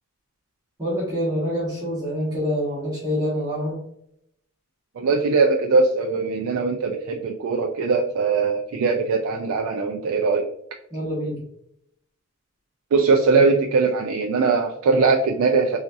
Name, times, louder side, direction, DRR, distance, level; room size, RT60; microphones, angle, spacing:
voice 1, 0.8-3.8 10.9-11.4, equal, 20° right, -8 dB, 1.1 m, -26 dB
voice 2, 5.0-10.5 12.9-15.8, right 4 dB, 90° right, 2 dB, 0.4 m, -21 dB
3.9 x 2.4 x 2.6 m, 0.74 s
head